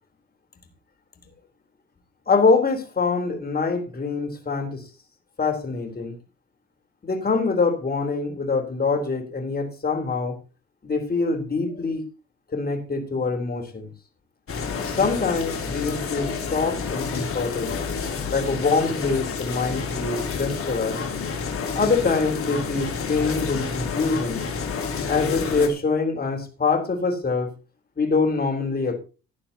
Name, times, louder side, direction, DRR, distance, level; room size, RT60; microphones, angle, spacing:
voice 1, 2.3-4.8 5.4-6.1 7.0-10.4 10.8-12.1 12.5-13.9 14.8-17.7 18.3-21.0 21.7-24.4 25.1-27.5 28.0-29.0, left 4 dB, 30° left, 3 dB, 3.8 m, -24 dB
sound 1, 14.5-25.7, left 5 dB, 45° left, 3.3 m, -29 dB
17.0 x 11.0 x 2.9 m, 0.32 s
cardioid pair, 90°, 30 cm